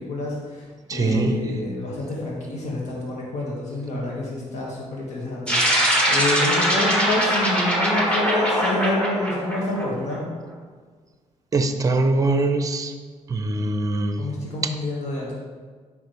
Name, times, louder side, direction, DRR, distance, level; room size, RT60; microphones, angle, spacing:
voice 1, 0.0-10.2 14.2-15.3, left 2 dB, 65° left, -4 dB, 1.9 m, -28 dB
voice 2, 0.9-1.4 11.5-12.9 13.3-14.2, right 2 dB, 30° right, 8 dB, 0.6 m, -22 dB
sound 1, 5.5-10.2, equal, 10° left, 1.6 m, -22 dB
8.8 x 5.7 x 3.4 m, 1.5 s
cardioid pair, 115°, 12 cm